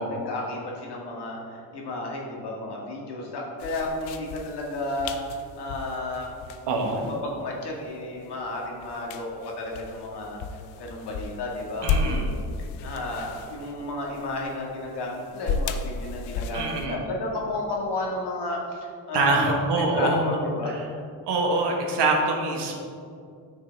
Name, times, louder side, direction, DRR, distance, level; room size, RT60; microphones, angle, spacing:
voice 1, 0.0-6.3 7.2-10.4 10.8-12.4 12.8-20.8, left 2 dB, 60° left, -2 dB, 2.0 m, -32 dB
sound 1, 3.6-16.9, left 4 dB, 80° left, 0.7 m, -34 dB
voice 2, 6.7-7.1 11.8-12.2 16.5-17.0 19.1-20.2 20.7-20.8 21.3-22.8, right 3 dB, 60° right, 1 dB, 1.6 m, -24 dB
9.3 x 6.4 x 3.5 m, 2.4 s
supercardioid pair, 65°, 46 cm